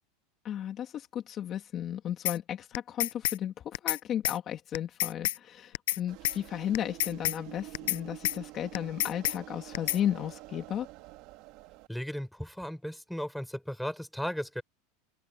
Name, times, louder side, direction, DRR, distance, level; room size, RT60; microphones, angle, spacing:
voice 1, 0.4-10.9, left 10 dB, 35° left, 2.3 m, -34 dB
sound 1, 2.3-2.4 2.7-3.4 3.7-4.0 4.2-4.4 4.7-5.4 5.7-6.0 6.2-6.4 6.7-7.4 7.7-8.4 8.7-9.4 9.7-10.0, left 16 dB, 80° left, 0.4 m, -29 dB
sound 2, 6.1-11.9, right 19 dB, 50° right, 1.9 m, -47 dB
voice 2, 11.9-14.6, equal, ahead, 4.4 m, -36 dB
open air
supercardioid pair, 145°, 0 cm